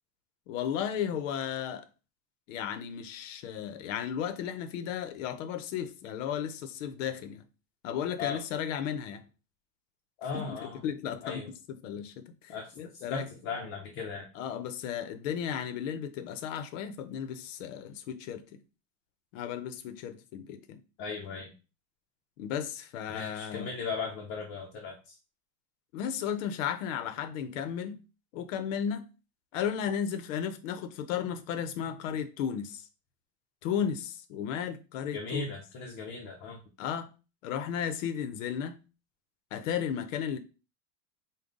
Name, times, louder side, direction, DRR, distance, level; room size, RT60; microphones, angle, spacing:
voice 1, 0.5-1.9 2.5-7.4 7.8-9.2 10.3-11.5 11.8-13.3 14.3-18.6 19.3-20.8 22.4-23.7 25.9-28.0 28.3-29.1 29.5-32.8 33.6-35.5 36.8-37.1 37.4-38.8 39.5-40.4, left 8 dB, 85° left, 0.7 m, -34 dB
voice 2, 10.2-10.8 11.2-11.5 12.5-14.3 21.0-21.5 23.1-25.1 35.1-36.6, left 4 dB, 30° left, 0.6 m, -37 dB
5.2 x 2.2 x 3.8 m
supercardioid pair, 180°, 37 cm